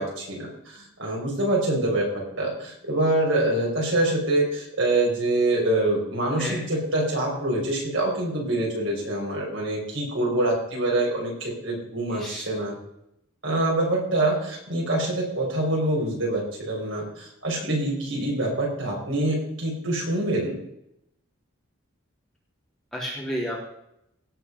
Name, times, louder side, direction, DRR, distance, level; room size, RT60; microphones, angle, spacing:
voice 1, 0.0-12.7 13.4-20.5, right 1 dB, 75° right, -3 dB, 5.5 m, -25 dB
voice 2, 12.1-12.5 22.9-23.6, equal, 5° left, -5 dB, 3.4 m, -31 dB
17.0 x 5.7 x 6.1 m, 0.78 s
head